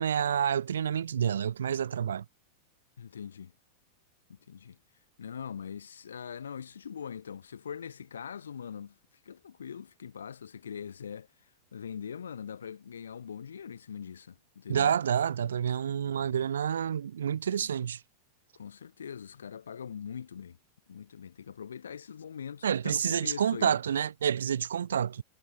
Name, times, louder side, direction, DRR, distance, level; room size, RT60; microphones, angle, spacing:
voice 1, 0.0-2.2 14.7-18.0 22.6-25.2, right 8 dB, 65° right, 0.5 m, -28 dB
voice 2, 3.0-3.5 4.3-4.8 5.2-9.0 9.2-11.3 11.7-15.0 15.9-16.5 18.5-20.6 20.9-23.8, left 7 dB, 70° left, 3.3 m, -42 dB
figure-of-eight pair, 90°, 0 cm